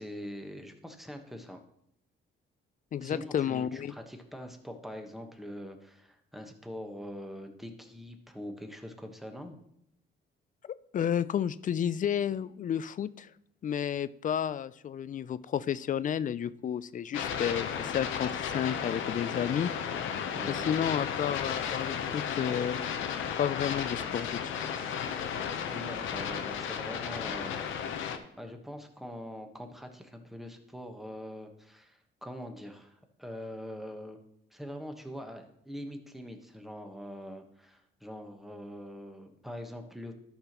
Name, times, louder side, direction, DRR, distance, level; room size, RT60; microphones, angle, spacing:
voice 1, 0.0-1.6 3.0-9.6 20.3-20.7 25.7-27.7 28.4-34.2 34.5-40.1, equal, ahead, 4 dB, 1.2 m, -43 dB
voice 2, 2.9-3.9 10.6-13.3 13.6-19.7 20.5-24.6, left 9 dB, 40° left, 16 dB, 0.4 m, -32 dB
sound 1, 17.1-28.2, left 7 dB, 85° left, 0.8 m, -34 dB
13.0 x 5.7 x 3.0 m, 0.75 s
cardioid pair, 90°, 20 cm